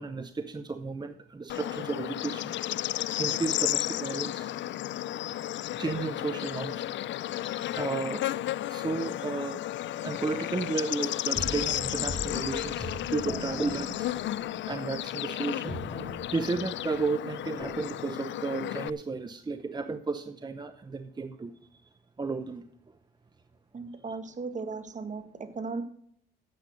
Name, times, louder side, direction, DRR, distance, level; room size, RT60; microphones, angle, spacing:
voice 1, 0.0-2.5 3.2-4.5 5.8-6.9 7.7-8.2 8.7-9.6 10.0-14.1 14.7-15.8 16.3-21.9 22.2-22.6, right 3 dB, 20° right, 10 dB, 0.8 m, -33 dB
Bird / Insect, 1.5-18.9, left 13 dB, 70° left, 0.5 m, -33 dB
sound 1, 11.4-15.3 15.7-17.8, left 1 dB, 30° left, 3.2 m, -41 dB
voice 2, 23.7-25.8, right 4 dB, 40° right, 9 dB, 1.7 m, -36 dB
10.5 x 8.0 x 6.3 m, 0.66 s
cardioid pair, 90°, 20 cm